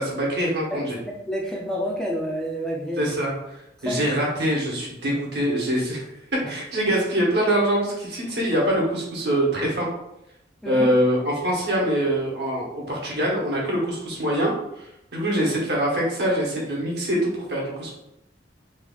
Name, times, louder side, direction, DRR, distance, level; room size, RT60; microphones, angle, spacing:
voice 1, 0.0-1.0 3.0-3.6 3.8-6.1 6.5-9.9 10.6-17.9, equal, 65° right, -3 dB, 1.1 m, -24 dB
voice 2, 1.1-3.1 3.8-4.1 6.4-6.5 10.6-10.9, equal, 5° left, -2 dB, 0.4 m, -29 dB
3.6 x 3.0 x 2.3 m, 0.85 s
head